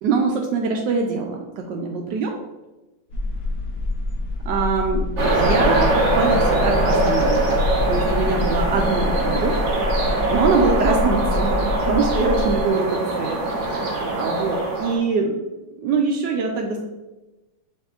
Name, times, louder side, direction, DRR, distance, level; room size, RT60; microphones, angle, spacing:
voice 1, 0.0-2.4 4.5-7.6 7.9-9.6 10.3-13.4 13.7-15.4 15.8-16.8, right 4 dB, 75° right, 2 dB, 1.2 m, -23 dB
sound 1, 3.1-12.6, left 2 dB, 65° left, 1.5 m, -26 dB
sound 2, 5.2-15.0, right 2 dB, 45° right, 1.1 m, -22 dB
6.3 x 3.3 x 2.4 m, 1.1 s
omnidirectional pair, 2.0 m